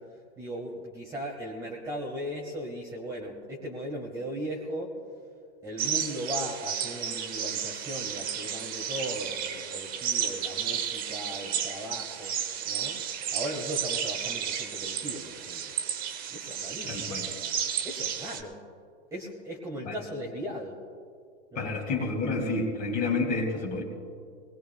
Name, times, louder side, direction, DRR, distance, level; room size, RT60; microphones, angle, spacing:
voice 1, 0.0-5.0 5.6-12.4 12.6-15.7 16.3-17.1 17.8-18.6 19.1-20.8 21.5-21.7, equal, 10° right, -2 dB, 1.2 m, -38 dB
sound 1, 5.8-18.4, right 8 dB, 25° right, 0.8 m, -33 dB
voice 2, 16.9-17.3 19.9-20.0 21.6-23.8, left 3 dB, 25° left, 0 dB, 2.0 m, -29 dB
22.5 x 19.5 x 2.3 m, 2.4 s
hypercardioid pair, 145°, 36 cm